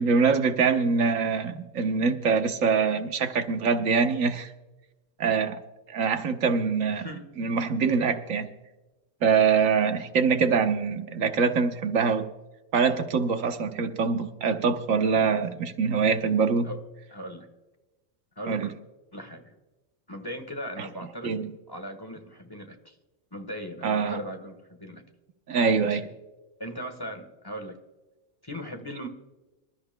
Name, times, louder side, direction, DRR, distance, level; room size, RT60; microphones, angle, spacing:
voice 1, 0.0-4.5 5.2-5.6 5.9-7.1 7.4-8.5 9.2-12.3 12.7-16.7 18.5-18.7 20.8-20.9 21.2-21.5 23.8-24.2 25.5-26.1, right 5 dB, 85° right, 1.4 m, -24 dB
voice 2, 6.9-7.2 16.6-16.8 17.1-17.5 18.4-18.7 19.1-19.5 20.1-21.4 21.7-22.9 23.3-25.0 25.8-26.0 26.6-27.8 28.4-29.1, equal, 20° left, 1.3 m, -38 dB
26.0 x 13.0 x 2.2 m
omnidirectional pair, 1.3 m